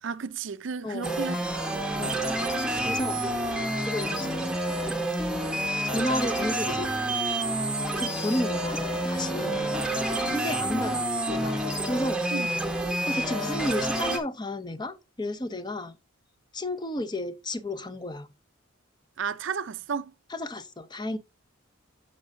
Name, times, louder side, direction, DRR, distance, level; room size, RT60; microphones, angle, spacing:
voice 1, 0.0-1.5 1.7-2.2 9.5-9.7 10.1-10.4 12.3-12.5 19.2-20.1, right 6 dB, 60° right, 0.5 m, -34 dB
voice 2, 0.8-1.4 2.0-2.6 2.8-3.2 3.9-4.4 5.2-5.4 5.8-6.9 8.0-9.6 10.3-11.6 11.8-12.2 13.1-15.9 16.5-18.3 20.3-21.2, left 1 dB, 20° left, 0.6 m, -32 dB
sound 1, 1.0-14.2, right 1 dB, 5° right, 0.9 m, -28 dB
8.5 x 6.5 x 2.6 m
head